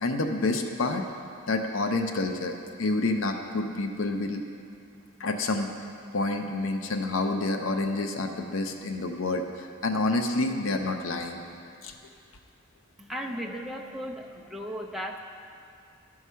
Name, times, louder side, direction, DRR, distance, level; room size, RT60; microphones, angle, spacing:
voice 1, 0.0-1.0 1.5-4.4 5.2-5.7 6.1-11.4 11.8-11.9, left 2 dB, 85° left, 5 dB, 0.6 m, -28 dB
voice 2, 13.0-15.2, equal, ahead, 0 dB, 0.5 m, -36 dB
12.5 x 4.8 x 5.6 m, 2.4 s
head